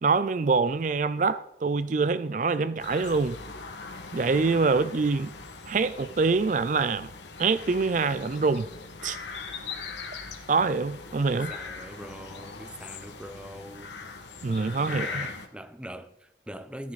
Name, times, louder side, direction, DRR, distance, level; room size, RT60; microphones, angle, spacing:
voice 1, 0.0-3.4 4.1-5.3 5.7-7.1 7.4-8.7 9.0-9.2 10.5-11.5 14.4-15.3, right 4 dB, 45° right, 0.4 m, -25 dB
sound 1, 2.8-15.5, left 4 dB, 85° left, 1.9 m, -40 dB
voice 2, 11.3-13.9 14.9-16.9, equal, 5° right, 0.7 m, -42 dB
14.0 x 13.5 x 4.1 m
head